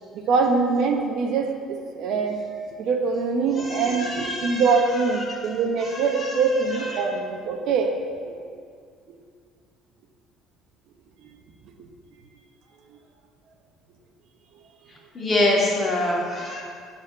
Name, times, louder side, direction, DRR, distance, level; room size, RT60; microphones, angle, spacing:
voice 1, 0.1-2.4 2.8-8.0 8.2-8.4 11.2-11.3, right 4 dB, 60° right, 4 dB, 0.9 m, -23 dB
voice 2, 3.6-4.8 5.3-5.4 5.8-6.3 6.8-6.9 15.1-16.6, left 1 dB, 25° left, -3 dB, 2.1 m, -25 dB
12.0 x 4.2 x 7.7 m, 2.2 s
cardioid pair, 145°, 0 cm